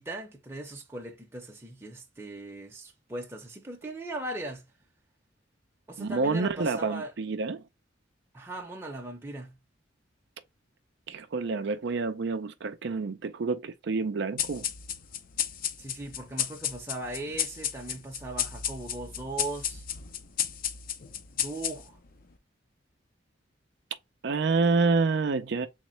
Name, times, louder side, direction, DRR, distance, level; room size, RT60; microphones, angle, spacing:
voice 1, 0.0-4.7 5.9-7.1 8.3-9.6 15.8-19.8 21.3-22.0, right 2 dB, 15° right, 0.7 m, -39 dB
voice 2, 6.0-7.6 11.1-14.7 24.2-25.7, right 4 dB, 65° right, 0.5 m, -28 dB
sound 1, 14.4-22.1, left 9 dB, 50° left, 0.5 m, -33 dB
3.6 x 3.1 x 3.1 m
head